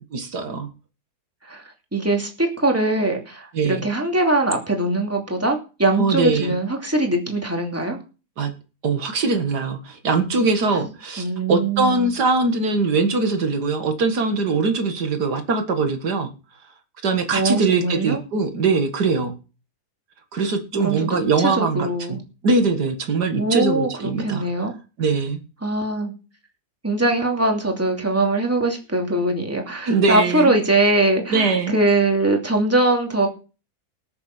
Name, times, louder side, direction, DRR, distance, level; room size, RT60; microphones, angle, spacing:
voice 1, 0.1-0.7 3.5-3.9 6.0-6.6 8.4-8.5 8.8-16.3 17.0-19.3 20.3-24.5 25.0-25.4 29.8-30.5 31.3-31.8, right 4 dB, 85° right, 7 dB, 2.3 m, -22 dB
voice 2, 1.9-8.0 11.2-12.1 17.3-18.2 20.8-22.2 23.3-24.7 25.6-26.1 26.8-33.3, right 2 dB, 10° right, 2 dB, 2.7 m, -22 dB
19.0 x 7.1 x 6.1 m, 0.34 s
omnidirectional pair, 1.7 m